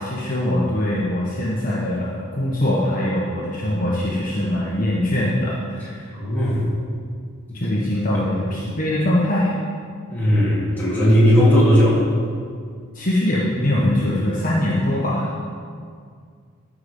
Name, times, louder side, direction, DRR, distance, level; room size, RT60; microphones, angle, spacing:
voice 1, 0.0-6.0 7.5-9.5 12.9-15.3, left 1 dB, 40° left, -6 dB, 1.2 m, -22 dB
voice 2, 6.1-6.7 8.1-8.2 10.1-12.0, equal, 10° left, -9 dB, 2.6 m, -17 dB
13.0 x 5.0 x 5.3 m, 2.1 s
head